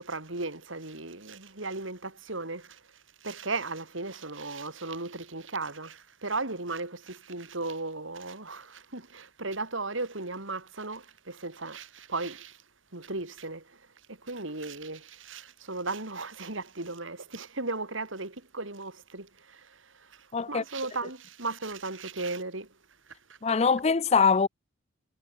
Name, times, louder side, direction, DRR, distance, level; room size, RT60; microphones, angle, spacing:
voice 1, 0.0-2.8 3.2-12.6 12.9-13.8 14.1-22.7 23.3-23.4, right 3 dB, 70° right, 3.8 m, -36 dB
voice 2, 20.3-20.6 23.4-24.5, left 5 dB, 30° left, 0.5 m, -23 dB
head